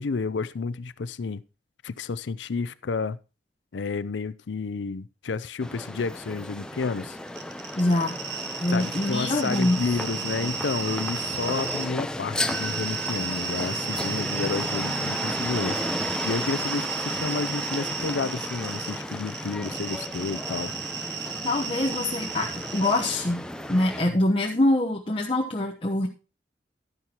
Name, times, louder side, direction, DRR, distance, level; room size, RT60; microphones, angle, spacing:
voice 1, 0.0-1.4 1.8-3.2 3.7-7.2 8.7-15.8 16.2-20.7, left 4 dB, 85° left, 0.5 m, -30 dB
sound 1, 5.6-24.0, left 1 dB, 5° left, 0.6 m, -34 dB
sound 2, 7.3-11.9 12.5-23.2, right 6 dB, 80° right, 1.5 m, -34 dB
voice 2, 7.8-8.2 8.6-9.8 21.4-23.4 23.7-26.1, left 1 dB, 30° left, 0.9 m, -24 dB
11.5 x 10.0 x 2.9 m
head